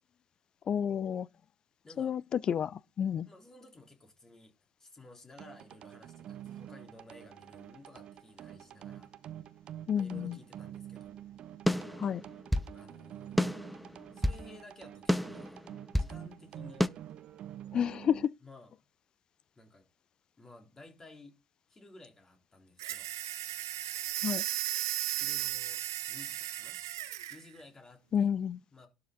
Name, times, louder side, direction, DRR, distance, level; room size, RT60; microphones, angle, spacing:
voice 1, 0.7-1.3 2.0-3.3 9.9-10.4 12.0-12.2 17.7-18.3 24.2-24.4 28.1-28.6, left 8 dB, 40° left, 0.4 m, -30 dB
voice 2, 1.8-2.2 3.3-4.5 4.8-9.1 9.9-11.1 12.7-13.6 14.1-15.6 15.9-16.9 18.4-18.7 19.6-19.9 20.4-21.3 21.7-23.1 25.2-25.8 26.1-26.8 27.3-28.3 28.7-28.9, left 2 dB, 25° left, 3.6 m, -54 dB
sound 1, 5.4-18.3, right 11 dB, 50° right, 0.8 m, -48 dB
sound 2, 11.7-12.7 13.4-14.5 15.1-16.2 16.8-16.9, left 1 dB, ahead, 0.7 m, -30 dB
sound 3, 22.8-27.4, right 13 dB, 80° right, 0.8 m, -35 dB
12.0 x 6.7 x 3.8 m
hypercardioid pair, 60°, 2 cm